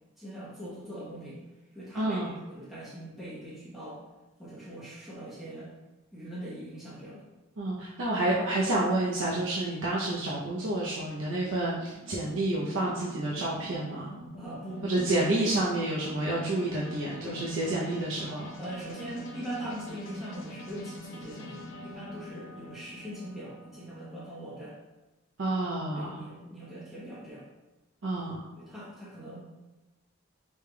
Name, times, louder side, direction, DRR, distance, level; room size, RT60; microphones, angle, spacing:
voice 1, 0.2-1.4 1.7-4.0 4.4-5.7 6.1-7.2 14.4-15.6 16.6-16.7 17.1-17.8 18.6-24.8 25.9-27.4 28.6-29.5, right 1 dB, ahead, -10 dB, 0.8 m, -41 dB
voice 2, 2.0-2.3 7.6-14.1 14.8-18.5 25.4-26.3 28.0-28.5, right 2 dB, 70° right, -5 dB, 0.6 m, -29 dB
sound 1, 11.8-24.2, equal, 65° left, 0.7 m, -45 dB
5.1 x 3.3 x 2.2 m, 1.1 s
head